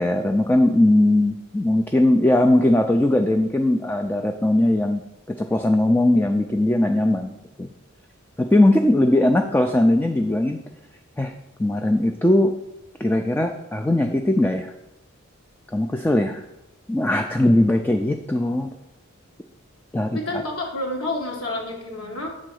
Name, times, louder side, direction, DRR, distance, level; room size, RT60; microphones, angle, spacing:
voice 1, 0.0-5.0 5.3-7.3 7.6-7.7 8.4-10.6 11.2-11.3 11.6-12.5 13.0-14.7 15.7-16.4 16.9-18.7 19.9-20.2, left 1 dB, 10° left, 5 dB, 0.3 m, -19 dB
voice 2, 20.1-22.3, left 2 dB, 85° left, -1 dB, 1.7 m, -29 dB
7.5 x 3.8 x 6.3 m, 0.94 s
head